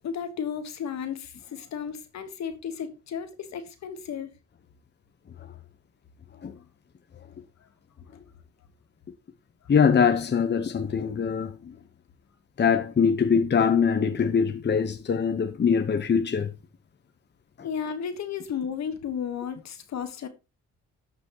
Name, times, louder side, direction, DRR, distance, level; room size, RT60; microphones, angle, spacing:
voice 1, 0.0-4.3 17.6-20.3, left 7 dB, 65° left, 1.4 m, -33 dB
voice 2, 9.7-11.7 12.6-16.5, left 6 dB, 35° left, 1.0 m, -23 dB
12.5 x 6.1 x 3.0 m
cardioid pair, 90°, 30 cm